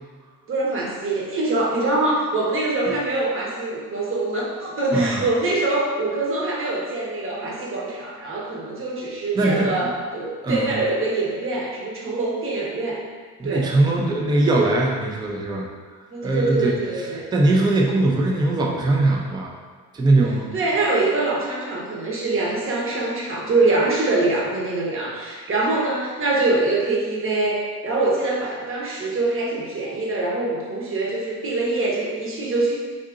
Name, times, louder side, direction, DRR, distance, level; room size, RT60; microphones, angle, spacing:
voice 1, 0.5-13.0 13.4-13.7 16.1-17.2 20.5-32.7, right 2 dB, 30° right, -4 dB, 0.9 m, -24 dB
voice 2, 9.3-9.9 10.4-10.7 13.4-15.7 16.2-16.8 17.3-19.5 19.9-20.5, right 2 dB, 10° right, -1 dB, 0.4 m, -20 dB
3.8 x 2.6 x 2.4 m, 1.5 s
hypercardioid pair, 70°, 44 cm